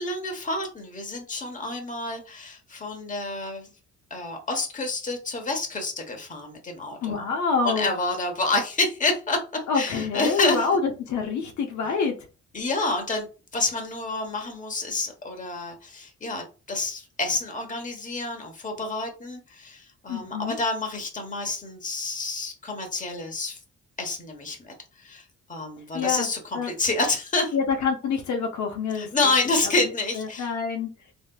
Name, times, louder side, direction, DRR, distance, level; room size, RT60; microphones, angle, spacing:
voice 1, 0.0-3.7 4.1-7.1 7.6-10.7 11.8-11.9 12.5-13.3 13.5-23.6 24.0-25.2 25.5-27.5 28.9-30.5, left 2 dB, 25° left, 3 dB, 1.0 m, -28 dB
voice 2, 7.0-7.9 9.7-12.2 20.1-20.6 25.9-26.3 26.5-26.7 27.5-29.1 29.6-29.7 30.1-30.9, left 5 dB, 70° left, 3 dB, 0.7 m, -26 dB
3.2 x 2.7 x 2.3 m, 0.33 s
cardioid pair, 90°, 30 cm